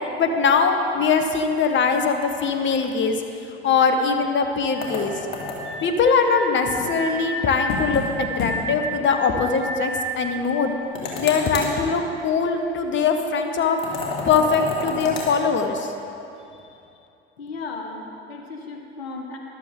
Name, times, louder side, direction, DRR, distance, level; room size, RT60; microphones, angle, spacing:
voice 1, 0.2-3.2 3.6-5.2 5.8-10.7 11.2-13.8 14.2-15.9, left 5 dB, 40° left, 6 dB, 1.2 m, -21 dB
sound 1, 4.7-11.6, right 2 dB, 90° right, 1.6 m, -32 dB
sound 2, 4.8-5.8 7.7-8.1 8.4-8.5 8.8-8.9 10.9-11.7 13.8-15.3, left 3 dB, 60° left, 2.4 m, -29 dB
voice 2, 17.4-19.4, left 3 dB, 80° left, 2 dB, 1.4 m, -35 dB
14.0 x 12.0 x 3.8 m, 2.7 s
figure-of-eight pair, 65°, 31 cm